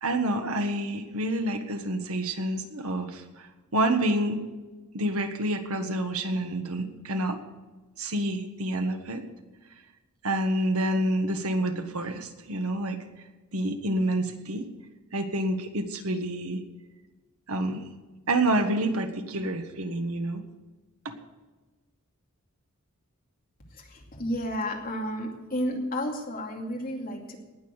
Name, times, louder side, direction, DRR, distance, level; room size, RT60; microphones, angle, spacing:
voice 1, 0.0-3.5 3.7-4.4 4.9-7.4 8.0-9.2 10.2-13.0 13.5-14.7 15.1-16.6 17.5-17.8 18.3-20.4 21.0-21.1, right 1 dB, 80° right, 6 dB, 1.6 m, -28 dB
voice 2, 23.7-27.4, equal, 40° left, 0 dB, 2.6 m, -32 dB
19.0 x 7.0 x 8.0 m, 1.2 s
head